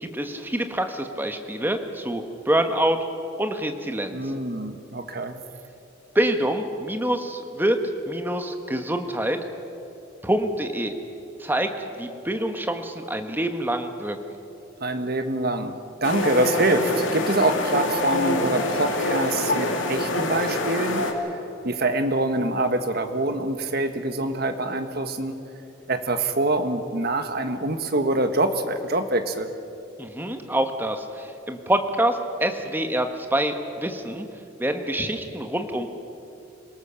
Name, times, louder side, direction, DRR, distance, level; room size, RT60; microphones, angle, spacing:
voice 1, 0.0-3.0 3.4-4.2 6.1-7.8 8.1-9.4 10.2-10.9 11.4-11.7 12.0-14.2 30.0-34.3 34.6-35.9, right 1 dB, 10° right, 6 dB, 1.3 m, -26 dB
voice 2, 4.1-5.4 14.8-21.0 21.3-21.4 21.6-25.3 25.9-29.5, right 2 dB, 50° right, 8 dB, 1.4 m, -25 dB
sound 1, 16.0-21.1, left 2 dB, 75° left, 2.5 m, -25 dB
26.5 x 18.0 x 7.0 m, 2.7 s
head